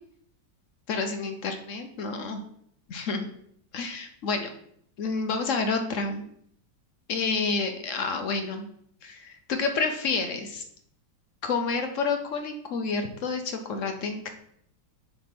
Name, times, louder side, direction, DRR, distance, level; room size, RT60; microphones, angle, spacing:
voice 1, 0.9-2.4 2.9-3.3 3.7-4.5 5.0-6.2 7.1-8.7 9.0-10.6 11.4-14.3, left 4 dB, 60° left, 5 dB, 0.8 m, -29 dB
7.6 x 3.4 x 5.9 m, 0.68 s
omnidirectional pair, 2.1 m